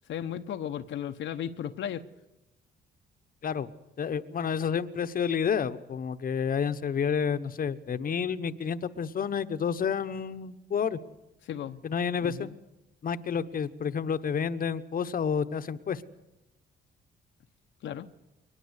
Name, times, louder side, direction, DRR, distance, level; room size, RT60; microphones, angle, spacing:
voice 1, 0.1-2.0 11.4-11.8 12.2-12.5 17.8-18.1, left 9 dB, 70° left, 7 dB, 0.9 m, -35 dB
voice 2, 4.0-11.0 11.8-12.5 13.0-16.0, left 7 dB, 45° left, 11 dB, 1.0 m, -30 dB
22.5 x 20.0 x 8.2 m, 0.96 s
cardioid pair, 90°, 20 cm